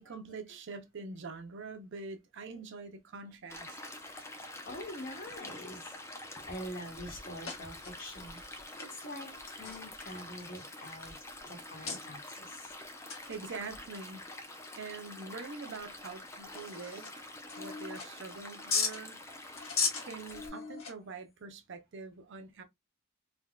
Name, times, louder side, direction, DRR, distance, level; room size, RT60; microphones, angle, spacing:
voice 1, 0.0-3.8 13.3-14.2 14.8-17.1 17.6-19.2 20.0-22.6, right 4 dB, 60° right, 0.5 m, -44 dB
Stream, 3.5-20.5, left 2 dB, 15° left, 0.4 m, -47 dB
sound 1, 4.2-4.6 5.5-5.6 6.0-6.5 7.0-7.1 7.4-9.0 9.5-11.3 11.8-12.0 13.1-13.4 13.7-13.9 14.5-14.6 15.1-15.2 15.9-16.0 16.3-17.1 17.5-18.3 18.7-19.0 19.6-21.2, left 5 dB, 70° left, 1.1 m, -37 dB
voice 2, 4.3-12.8 19.3-19.4 19.7-20.1 20.8-20.9, left 1 dB, 40° left, 1.1 m, -46 dB
3.4 x 2.2 x 2.2 m
head